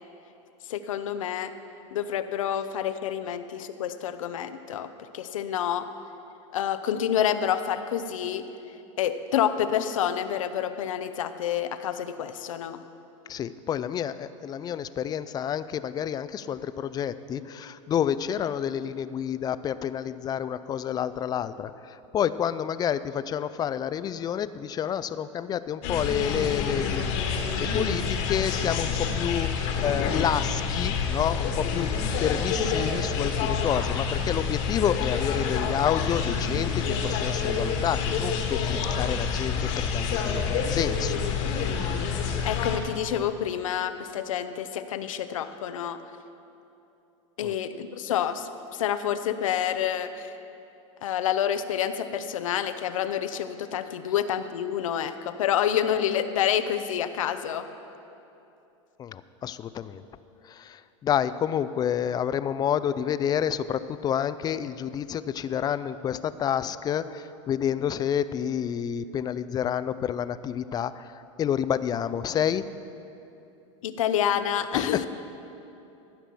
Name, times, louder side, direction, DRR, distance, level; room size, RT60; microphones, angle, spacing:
voice 1, 0.7-1.5 1.9-4.9 5.1-5.9 6.5-8.4 9.0-12.8 42.4-46.0 47.4-50.3 51.0-57.7 73.8-75.1, left 9 dB, 85° left, 11 dB, 0.7 m, -28 dB
voice 2, 13.3-29.5 29.8-31.9 32.2-41.2 47.4-47.5 59.0-60.0 60.4-71.1 71.4-72.6 74.7-75.1, left 9 dB, 25° left, 14 dB, 0.3 m, -29 dB
sound 1, 25.8-42.8, left 6 dB, 60° left, 1.6 m, -27 dB
14.5 x 5.9 x 7.0 m, 2.8 s
hypercardioid pair, 115°, 17 cm